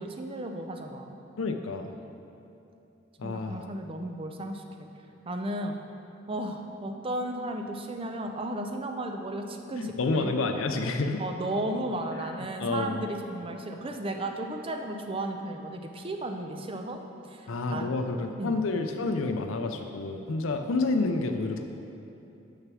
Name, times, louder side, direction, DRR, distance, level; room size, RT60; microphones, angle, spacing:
voice 1, 0.0-1.2 3.2-4.9 5.3-5.7 6.3-10.3 11.2-17.0 17.3-17.9 18.4-18.6, right 1 dB, 25° right, 4 dB, 0.5 m, -34 dB
voice 2, 1.4-1.9 3.2-3.7 9.8-11.2 12.2-12.3 12.6-13.0 17.5-21.6, left 3 dB, 80° left, 6 dB, 0.5 m, -29 dB
6.4 x 5.9 x 6.1 m, 2.8 s
head